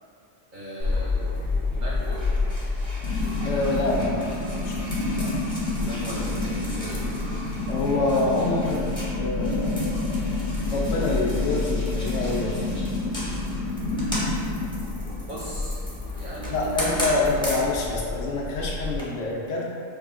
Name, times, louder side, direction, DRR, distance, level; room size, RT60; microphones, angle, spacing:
voice 1, 0.5-1.4 1.7-2.2 5.8-7.1 9.5-9.7 15.3-15.8 16.1-17.2, right 1 dB, 55° right, -7 dB, 0.6 m, -38 dB
sound 1, 0.8-19.0, left 3 dB, 5° left, 0.5 m, -30 dB
sound 2, 3.0-15.7, left 2 dB, 60° left, 0.4 m, -30 dB
voice 2, 3.4-4.3 4.6-5.5 7.7-8.9 9.1-10.4 10.7-12.6 16.5-19.7, left 2 dB, 75° left, -2 dB, 0.9 m, -27 dB
4.8 x 2.4 x 2.3 m, 2.4 s
omnidirectional pair, 1.3 m